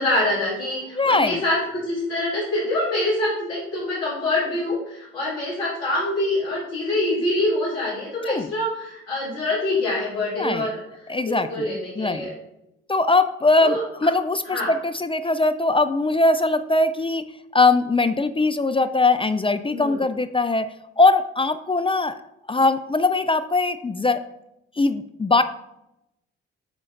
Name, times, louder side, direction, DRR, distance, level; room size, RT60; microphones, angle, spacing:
voice 1, 0.0-10.8 11.2-12.3 13.6-13.8 14.5-14.7 19.7-20.0, left 1 dB, 85° left, -7 dB, 2.4 m, -25 dB
voice 2, 0.9-1.4 8.3-8.5 10.4-10.7 11.1-12.3 12.9-17.2 17.5-22.1 22.5-24.2 24.8-25.4, left 3 dB, 15° left, 11 dB, 0.4 m, -21 dB
7.9 x 3.7 x 3.8 m, 0.85 s
hypercardioid pair, 40°, 33 cm